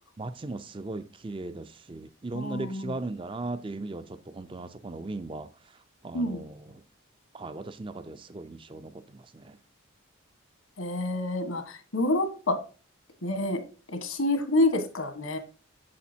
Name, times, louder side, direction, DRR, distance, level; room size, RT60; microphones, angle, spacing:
voice 1, 0.2-5.5 6.0-6.8 7.3-9.6, right 2 dB, 25° right, 0.4 m, -38 dB
voice 2, 2.3-2.9 6.1-6.4 10.8-11.6 11.9-12.6 13.2-13.6 14.0-15.4, left 1 dB, 80° left, 1.5 m, -27 dB
8.5 x 6.8 x 2.7 m
head